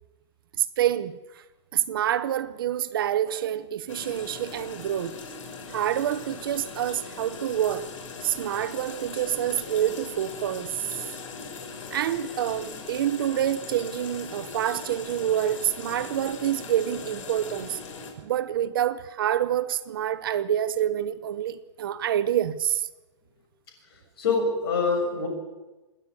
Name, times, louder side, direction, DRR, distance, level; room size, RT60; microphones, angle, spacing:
voice 1, 0.6-1.4 1.7-5.2 5.7-7.9 8.2-11.0 11.9-17.8 18.2-22.9, right 11 dB, 45° right, 0.8 m, -27 dB
sound 1, 3.9-18.1, left 5 dB, 85° left, 5.9 m, -40 dB
voice 2, 24.2-25.3, left 4 dB, 50° left, 6.7 m, -25 dB
27.5 x 9.9 x 9.6 m
hypercardioid pair, 175°, 16 cm